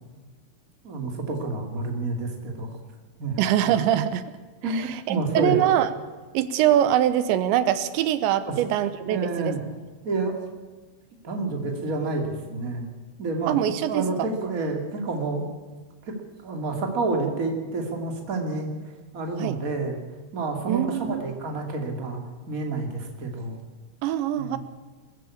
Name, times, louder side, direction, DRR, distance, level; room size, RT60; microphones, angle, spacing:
voice 1, 0.8-2.8 3.2-3.4 3.6-3.7 4.6-5.6 8.4-8.6 9.1-9.6 10.0-10.4 11.2-12.9 13.2-13.6 13.9-15.5 16.0-16.1 16.4-18.7 19.1-20.0 20.3-22.2 22.5-23.6 24.3-24.6, right 3 dB, 25° right, 3 dB, 2.2 m, -29 dB
voice 2, 3.4-4.3 4.7-4.8 5.1-5.9 6.3-9.5 13.5-14.1 19.4-19.6 20.7-21.2 24.0-24.6, right 11 dB, 85° right, 13 dB, 3.2 m, -23 dB
20.5 x 15.0 x 8.6 m, 1.3 s
omnidirectional pair, 5.3 m